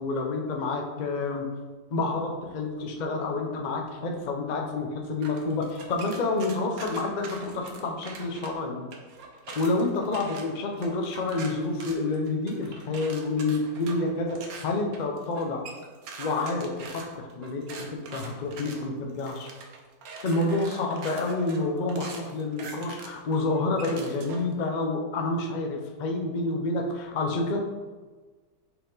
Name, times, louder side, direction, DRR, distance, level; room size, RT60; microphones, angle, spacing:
voice 1, 0.0-1.5 1.9-8.9 9.6-15.7 16.2-19.5 20.2-27.6, left 2 dB, 80° left, 1 dB, 0.4 m, -29 dB
sound 1, 5.2-8.5 8.9-24.5, right 4 dB, 60° right, 1.2 m, -43 dB
5.8 x 4.5 x 3.9 m, 1.3 s
omnidirectional pair, 1.9 m